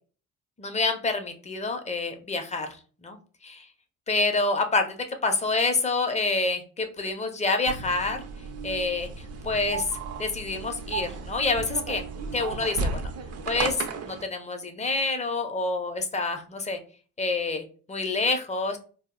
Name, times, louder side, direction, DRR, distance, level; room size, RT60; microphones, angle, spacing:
voice 1, 0.6-3.2 3.4-3.7 4.1-8.2 8.6-9.1 9.4-9.9 10.2-12.0 12.3-13.1 13.5-16.8 17.2-18.8, left 3 dB, 25° left, 6 dB, 0.5 m, -27 dB
sound 1, 7.7-14.2, right 4 dB, 55° right, 0.5 m, -34 dB
2.3 x 2.0 x 3.5 m, 0.39 s
cardioid pair, 90°, 30 cm